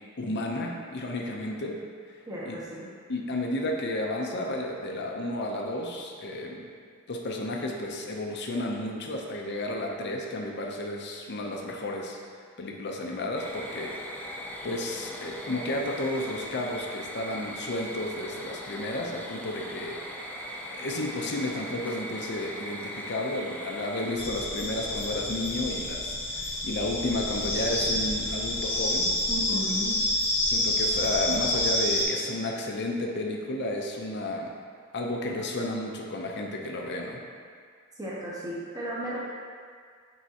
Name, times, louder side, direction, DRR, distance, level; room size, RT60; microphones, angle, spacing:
voice 1, 0.2-1.8 2.4-2.6 3.1-6.7 7.1-12.2 12.6-14.0 14.6-20.0 20.7-29.1 30.4-34.5 34.9-37.2, left 1 dB, 50° left, 0 dB, 0.7 m, -32 dB
voice 2, 2.3-2.9 29.3-29.9 38.0-39.2, right 1 dB, 15° right, -7 dB, 0.9 m, -34 dB
sound 1, 13.4-24.2, equal, 10° left, 0.5 m, -39 dB
sound 2, 24.2-32.0, left 1 dB, 25° left, 1.0 m, -28 dB
9.3 x 3.6 x 2.9 m, 2.1 s
head